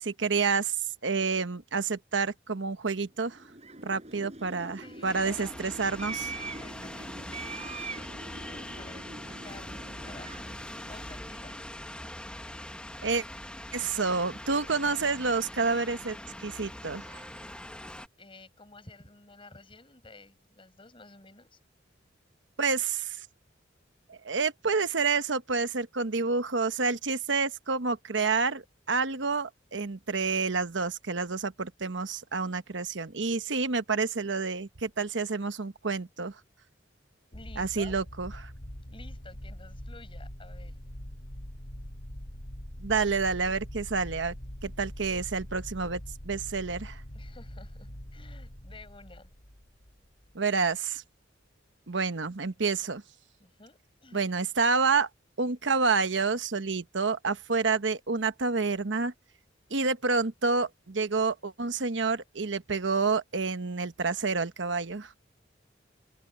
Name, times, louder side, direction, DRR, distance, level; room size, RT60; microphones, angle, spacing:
voice 1, 0.0-0.8 1.0-3.4 3.8-6.3 13.0-13.2 13.7-16.2 16.4-17.2 22.6-23.3 24.1-36.3 37.6-38.5 42.8-44.3 44.6-47.0 50.3-51.0 51.9-53.0 54.1-55.1 55.4-59.1 59.7-65.1, right 4 dB, 75° right, 1.1 m, -29 dB
sound 1, 3.3-11.8, right 3 dB, 35° right, 7.6 m, -43 dB
voice 2, 4.8-5.6 6.4-11.6 18.2-21.6 37.3-38.0 38.9-40.8 47.1-49.3 53.4-54.3, left 2 dB, 30° left, 5.8 m, -52 dB
sound 2, 5.0-18.1, left 1 dB, 5° left, 1.2 m, -42 dB
sound 3, 37.3-50.3, equal, 50° left, 2.5 m, -43 dB
open air
head